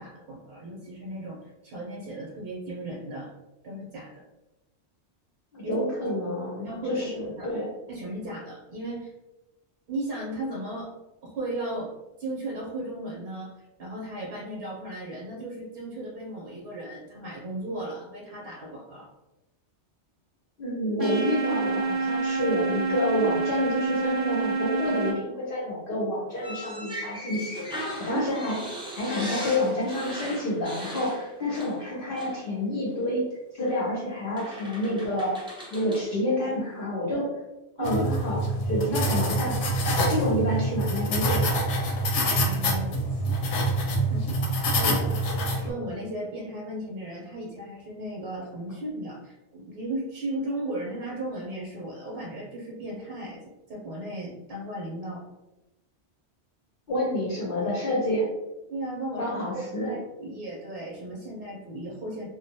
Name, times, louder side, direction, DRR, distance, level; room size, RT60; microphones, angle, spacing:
voice 1, 0.0-3.3 3.6-4.2 5.6-5.7 6.6-7.1 7.3-7.5 7.9-9.1 9.9-10.9 11.2-11.9 12.2-13.5 13.8-19.1 28.0-28.3 37.8-38.0 42.2-43.2 44.1-44.3 44.6-45.0 45.3-53.4 53.7-55.2 58.7-59.4 59.7-62.3, right 1 dB, 60° right, -4 dB, 0.8 m, -35 dB
voice 2, 5.5-7.7 20.6-28.6 29.0-33.3 33.5-35.4 35.7-37.3 37.8-39.6 40.1-41.6 44.8-45.2 56.9-58.3 59.2-59.9, left 1 dB, 60° left, -5 dB, 0.7 m, -28 dB
sound 1, 21.0-25.1, right 4 dB, 40° right, 0.7 m, -27 dB
sound 2, 26.4-31.9 32.2-32.4 33.6-33.8 34.4-36.1, equal, 10° right, 0.3 m, -38 dB
sound 3, 37.8-45.7, right 1 dB, 90° left, 0.9 m, -26 dB
2.5 x 2.1 x 2.7 m, 0.98 s
omnidirectional pair, 1.2 m